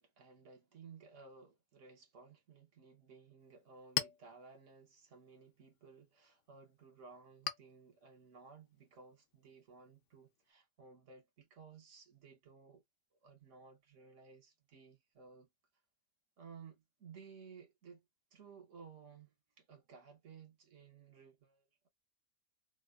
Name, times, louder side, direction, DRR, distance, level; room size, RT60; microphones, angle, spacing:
voice 1, 0.0-12.8 13.2-15.5 16.4-18.0 18.3-21.9, right 5 dB, 80° right, 1.4 m, -57 dB
Chink clink, 3.4-10.5, left 10 dB, 85° left, 0.9 m, -47 dB
3.7 x 2.2 x 2.4 m
omnidirectional pair, 1.3 m